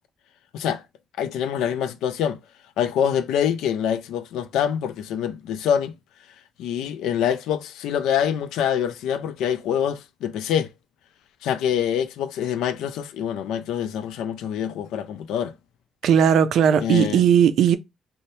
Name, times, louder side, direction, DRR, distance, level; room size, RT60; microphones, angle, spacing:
voice 1, 1.2-2.4 2.8-5.9 6.6-10.7 11.4-15.5 16.8-17.3, left 9 dB, 90° left, 0.3 m, -25 dB
voice 2, 16.0-17.8, right 8 dB, 75° right, 0.3 m, -17 dB
3.1 x 2.0 x 2.7 m
cardioid pair, 90°, 0 cm